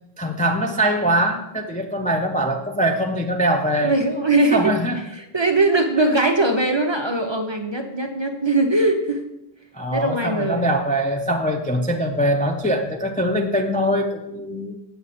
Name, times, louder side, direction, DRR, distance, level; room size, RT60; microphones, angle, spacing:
voice 1, 0.2-3.9 4.5-5.0 9.7-14.7, right 1 dB, 10° left, 2 dB, 0.4 m, -22 dB
voice 2, 3.8-4.7 5.3-9.2 9.9-10.7, right 2 dB, 30° right, 4 dB, 0.6 m, -20 dB
7.7 x 6.8 x 4.2 m, 0.88 s
omnidirectional pair, 1.0 m